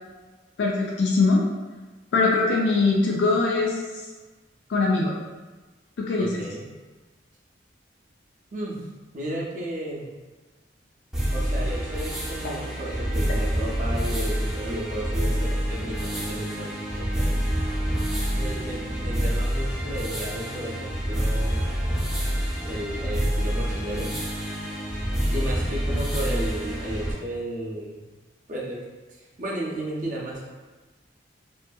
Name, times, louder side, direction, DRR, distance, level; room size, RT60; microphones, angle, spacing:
voice 1, 0.6-1.4 2.1-4.0 4.7-5.1 6.0-6.3, left 3 dB, 75° left, -2 dB, 0.4 m, -22 dB
voice 2, 6.1-6.7 8.5-8.8 9.1-10.1 11.3-17.4 18.3-21.6 22.6-24.1 25.3-28.1 28.5-28.8 29.1-30.5, right 1 dB, 45° right, -3 dB, 0.6 m, -33 dB
sound 1, 11.1-27.1, equal, 5° right, 0.5 m, -27 dB
2.6 x 2.5 x 2.3 m, 1.2 s
head